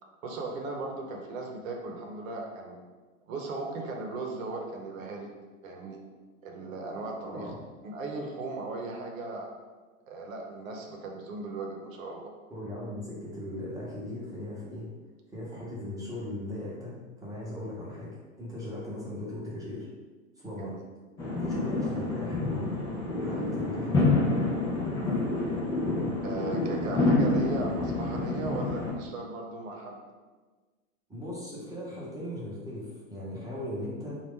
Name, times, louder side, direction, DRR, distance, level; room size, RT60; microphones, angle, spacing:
voice 1, 0.2-2.8 3.3-5.3 5.6-6.0 6.4-7.5 7.8-9.5 10.1-12.3 20.6-20.8 21.3-21.5 26.2-30.0, right 3 dB, 70° right, 1 dB, 0.8 m, -37 dB
voice 2, 7.2-7.6 12.5-14.8 15.3-18.1 18.4-19.9 20.4-20.7 21.4-22.7 23.2-24.2 31.1-34.1, left 1 dB, 10° right, -6 dB, 0.8 m, -38 dB
sound 1, 21.2-28.9, left 2 dB, 10° left, 0.3 m, -28 dB
3.0 x 2.5 x 3.5 m, 1.3 s
hypercardioid pair, 120°, 42 cm